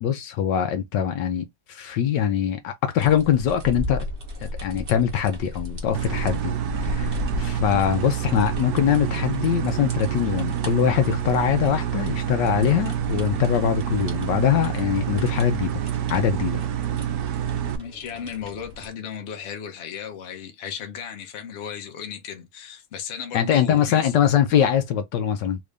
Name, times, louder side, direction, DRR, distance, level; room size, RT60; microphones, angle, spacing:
voice 1, 0.0-4.1 4.4-15.8 16.1-16.6 23.3-25.6, left 9 dB, 75° left, 1.2 m, -23 dB
sound 1, 3.0-18.9, left 2 dB, 40° right, 0.9 m, -36 dB
sound 2, 5.9-17.8, right 10 dB, 70° right, 0.9 m, -27 dB
voice 2, 17.5-24.1, left 8 dB, 50° left, 0.8 m, -35 dB
3.6 x 2.5 x 3.2 m
omnidirectional pair, 2.1 m